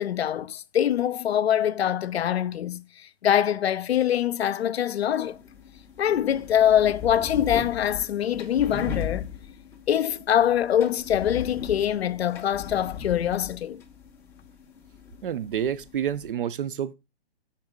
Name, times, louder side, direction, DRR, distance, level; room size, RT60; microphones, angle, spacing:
voice 1, 0.0-2.8 3.2-5.4 6.0-9.3 9.9-13.8, left 10 dB, 70° left, 0.6 m, -24 dB
sound 1, 5.2-16.3, left 7 dB, 10° left, 0.5 m, -38 dB
voice 2, 15.2-16.9, right 9 dB, 55° right, 0.6 m, -28 dB
5.9 x 3.6 x 4.8 m
hypercardioid pair, 140°, 32 cm